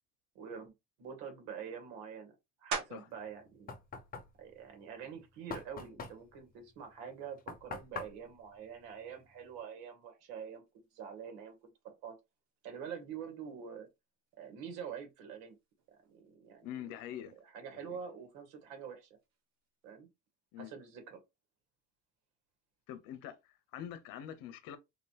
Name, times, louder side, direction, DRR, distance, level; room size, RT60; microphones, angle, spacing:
voice 1, 0.4-0.7 1.0-2.3 2.6-3.7 4.4-10.6 10.9-12.2 12.6-13.9 14.4-15.6 15.9-16.7 17.4-19.1 19.8-20.1 20.6-21.2, right 7 dB, 85° right, 2.1 m, -46 dB
sound 1, 2.7-3.3 3.9-8.3 8.8-14.0 14.3-19.9, right 6 dB, 65° right, 1.9 m, -49 dB
Knock, 3.1-9.6, left 4 dB, 25° left, 1.0 m, -47 dB
voice 2, 16.6-17.3 17.7-18.0 20.5-20.7 22.9-24.8, left 10 dB, 65° left, 1.1 m, -45 dB
4.0 x 3.7 x 3.0 m
cardioid pair, 155°, 36 cm